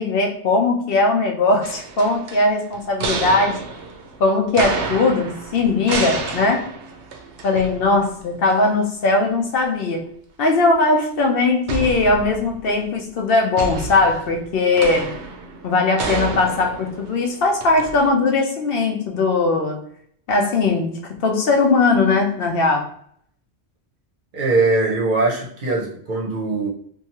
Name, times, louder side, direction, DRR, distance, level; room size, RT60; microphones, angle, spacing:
voice 1, 0.0-3.6 4.2-6.7 7.4-10.1 10.4-15.2 15.6-19.9 20.3-20.9 21.2-22.9, left 3 dB, 65° left, 2 dB, 0.7 m, -19 dB
sound 1, 1.6-8.2 8.5-8.6 11.7-12.7 13.6-18.1, right 4 dB, 85° right, 0.9 m, -30 dB
voice 2, 24.3-26.7, right 3 dB, 50° right, -2 dB, 0.8 m, -21 dB
2.7 x 2.3 x 2.8 m, 0.63 s
omnidirectional pair, 1.1 m